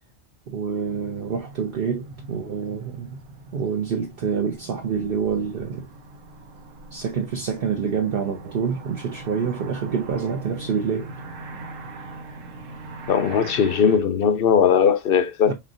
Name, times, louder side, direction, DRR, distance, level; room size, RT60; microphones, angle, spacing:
voice 1, 0.5-3.2 3.5-5.9 6.9-11.1 15.4-15.5, right 6 dB, 55° right, 0.8 m, -27 dB
sound 1, 0.8-14.0, right 3 dB, 90° right, 1.2 m, -41 dB
voice 2, 13.1-15.5, left 7 dB, 60° left, 0.6 m, -19 dB
4.4 x 3.2 x 2.5 m
omnidirectional pair, 1.3 m